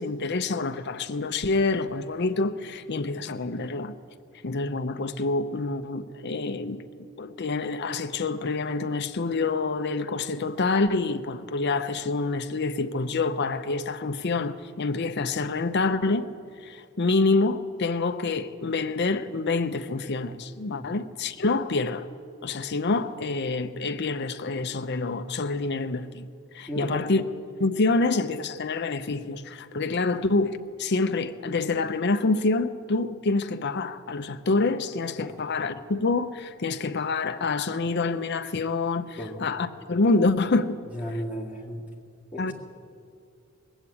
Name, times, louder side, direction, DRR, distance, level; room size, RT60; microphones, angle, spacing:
voice 1, 0.0-4.0 4.4-6.8 7.2-16.3 16.6-22.1 22.4-26.3 26.5-27.2 27.6-40.8 42.4-42.5, left 3 dB, 50° left, 0.6 m, -27 dB
voice 2, 26.7-27.0 35.2-35.4 39.2-39.4 40.9-41.8 42.3-42.5, equal, 5° right, 2.0 m, -34 dB
19.5 x 8.1 x 8.5 m
head